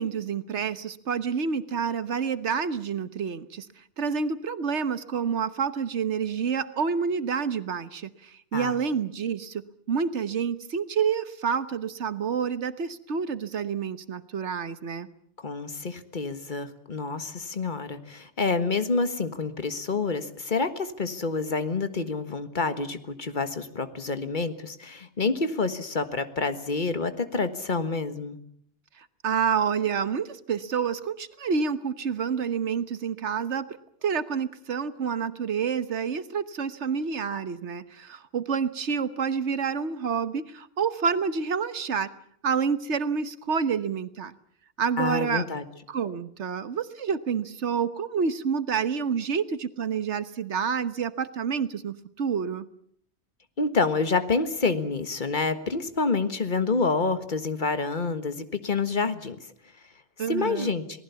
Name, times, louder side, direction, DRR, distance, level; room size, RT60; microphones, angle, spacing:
voice 1, 0.0-3.7 4.0-15.1 29.2-42.1 42.4-44.3 44.8-45.5 45.9-52.7 60.2-60.7, right 6 dB, 80° right, 13 dB, 1.5 m, -28 dB
voice 2, 15.4-28.4 45.0-45.6 53.6-59.4 60.3-60.8, left 4 dB, 45° left, 10 dB, 1.7 m, -28 dB
27.5 x 19.0 x 7.1 m, 0.65 s
omnidirectional pair, 1.2 m